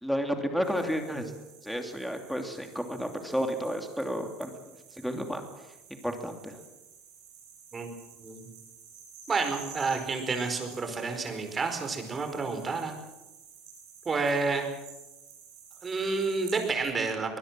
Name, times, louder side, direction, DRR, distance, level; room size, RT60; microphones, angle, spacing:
voice 1, 0.0-1.3 1.6-4.5 5.0-5.4 6.0-6.6, equal, ahead, 4 dB, 2.8 m, -31 dB
sound 1, 0.6-16.8, right 6 dB, 90° right, 7.9 m, -51 dB
voice 2, 9.3-13.0 14.0-14.7 15.8-17.4, right 4 dB, 20° right, 6 dB, 4.8 m, -30 dB
24.0 x 20.0 x 7.6 m, 1.0 s
cardioid pair, 140°, 0 cm